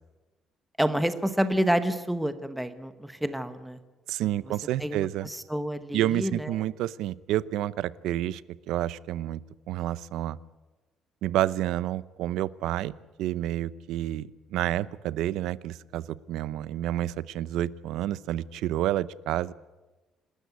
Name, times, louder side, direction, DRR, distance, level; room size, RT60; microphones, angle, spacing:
voice 1, 0.8-3.8 4.8-6.5, equal, ahead, 10 dB, 1.0 m, -28 dB
voice 2, 4.1-5.3 5.9-8.4 8.7-9.4 9.7-10.4 11.2-12.9 13.2-19.5, right 13 dB, 80° right, 19 dB, 0.7 m, -29 dB
27.5 x 13.0 x 9.5 m, 1.2 s
cardioid pair, 175°, 0 cm